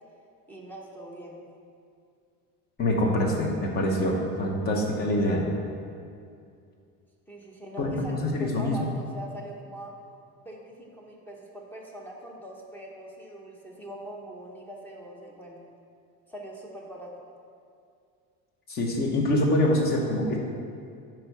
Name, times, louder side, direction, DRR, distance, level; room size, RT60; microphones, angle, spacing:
voice 1, 0.5-1.4 7.3-9.9 10.4-15.6 16.3-17.1, right 1 dB, 5° left, -2 dB, 0.8 m, -42 dB
voice 2, 2.8-5.4 7.8-8.8 18.7-20.4, left 1 dB, 25° left, 0 dB, 1.0 m, -25 dB
9.5 x 4.6 x 5.5 m, 2.4 s
cardioid pair, 170°, 36 cm